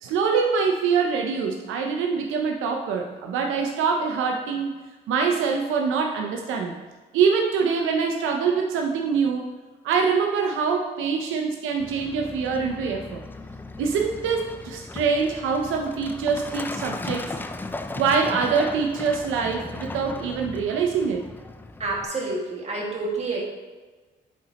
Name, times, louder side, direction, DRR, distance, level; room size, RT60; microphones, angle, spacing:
voice 1, 0.0-4.8 5.1-6.8 7.1-9.5 9.8-13.2 13.8-17.3 17.9-21.2, right 5 dB, 85° right, 2 dB, 0.6 m, -24 dB
Truck, 11.8-22.1, left 2 dB, 10° left, 0.3 m, -37 dB
voice 2, 21.8-23.4, right 3 dB, 35° right, -2 dB, 1.7 m, -28 dB
8.2 x 4.1 x 2.8 m, 1.3 s
cardioid pair, 90°, 20 cm